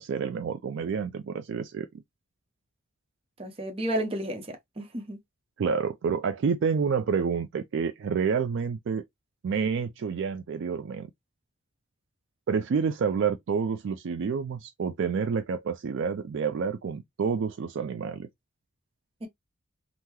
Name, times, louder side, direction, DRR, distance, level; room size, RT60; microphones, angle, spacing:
voice 1, 0.0-1.9 5.6-9.0 9.4-11.1 12.5-18.3, right 6 dB, 60° right, 0.3 m, -28 dB
voice 2, 3.4-5.2 19.2-19.3, right 1 dB, 25° right, 0.7 m, -32 dB
3.6 x 2.0 x 2.9 m
head